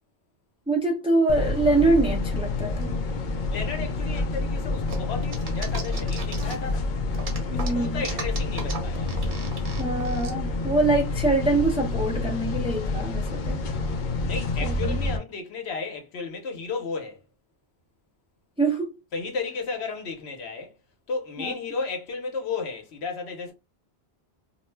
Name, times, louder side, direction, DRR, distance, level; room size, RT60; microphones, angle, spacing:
voice 1, 0.7-2.9 7.5-8.0 9.8-13.6 14.6-15.0 18.6-18.9 21.4-21.5, right 2 dB, 10° right, 0.4 m, -24 dB
sound 1, 1.3-15.2, left 3 dB, 60° left, 0.6 m, -28 dB
voice 2, 3.5-6.9 7.5-9.1 14.2-17.2 19.1-20.7 21.1-23.5, left 4 dB, 80° left, 1.0 m, -33 dB
sound 2, 4.9-6.8 7.1-10.3, right 3 dB, 55° right, 0.9 m, -36 dB
2.4 x 2.0 x 3.2 m
omnidirectional pair, 1.1 m